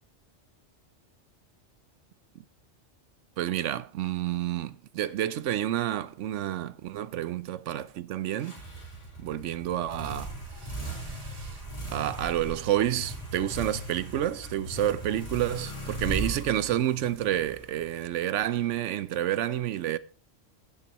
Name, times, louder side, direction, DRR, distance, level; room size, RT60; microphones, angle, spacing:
voice 1, 3.4-8.6 9.2-10.3 10.6-11.6 11.9-20.0, right 12 dB, 85° right, 1.0 m, -29 dB
sound 1, 8.4-18.2, right 2 dB, 30° left, 3.8 m, -38 dB
15.5 x 7.6 x 3.0 m
omnidirectional pair, 1.2 m